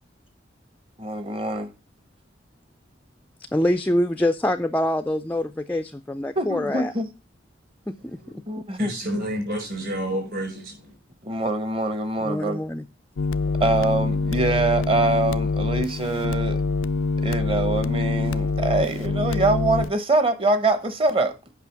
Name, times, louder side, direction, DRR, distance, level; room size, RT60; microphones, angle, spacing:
voice 1, 1.0-1.7 6.4-7.1 8.5-8.9 11.2-12.6 13.6-16.6 17.2-21.4, right 2 dB, 30° right, 0.9 m, -24 dB
voice 2, 3.5-6.9 8.0-8.2 8.6-8.7 12.2-12.8, left 1 dB, 10° left, 0.4 m, -25 dB
voice 3, 8.0-8.4 8.8-10.9, right 1 dB, 50° right, 4.9 m, -30 dB
sound 1, 13.2-19.9, left 3 dB, 90° left, 0.4 m, -25 dB
8.3 x 5.7 x 5.8 m
head